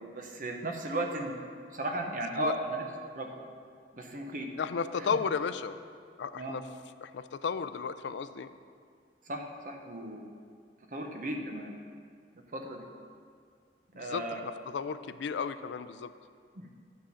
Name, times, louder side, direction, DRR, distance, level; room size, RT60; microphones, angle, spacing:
voice 1, 0.0-1.3 1.7-2.8 3.1-3.3 3.9-4.5 6.4-6.6 9.3-10.3 10.9-11.7 12.5-12.8 13.9-14.4 16.6-16.7, right 1 dB, 45° right, 2 dB, 0.8 m, -35 dB
voice 2, 4.6-5.8 6.2-6.7 7.0-8.5 13.9-16.1, left 6 dB, 75° left, 12 dB, 0.4 m, -34 dB
10.5 x 3.8 x 7.0 m, 2.1 s
head